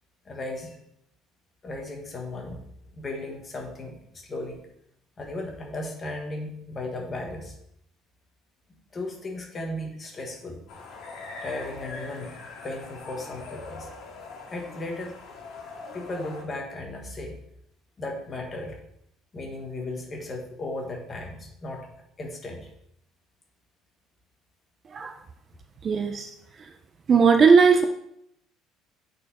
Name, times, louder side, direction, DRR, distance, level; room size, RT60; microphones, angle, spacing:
voice 1, 0.2-0.7 1.6-2.6 2.9-4.7 5.2-7.6 8.9-10.6 11.4-12.3 12.6-13.9 14.5-15.1 15.9-17.4 18.0-18.8 19.3-21.9 22.2-22.7, left 2 dB, 25° left, 2 dB, 1.3 m, -35 dB
sound 1, 10.7-16.4, left 3 dB, 60° left, 2.0 m, -42 dB
voice 2, 25.8-26.3 27.1-27.8, right 5 dB, 25° right, 5 dB, 0.4 m, -17 dB
8.5 x 4.4 x 4.1 m, 0.76 s
cardioid pair, 160°, 0 cm